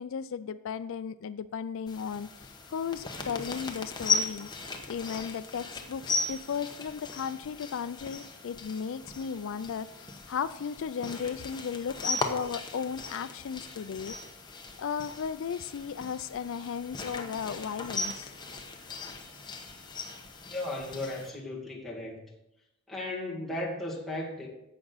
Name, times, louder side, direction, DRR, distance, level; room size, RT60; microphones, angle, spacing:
voice 1, 0.0-4.5 4.9-14.2 14.8-18.3, left 7 dB, 65° left, 14 dB, 0.4 m, -35 dB
sound 1, 1.9-21.3, left 3 dB, 20° left, 1.0 m, -37 dB
voice 2, 20.4-22.2 22.9-24.5, left 1 dB, ahead, -6 dB, 2.2 m, -36 dB
11.5 x 7.8 x 4.0 m, 0.89 s
head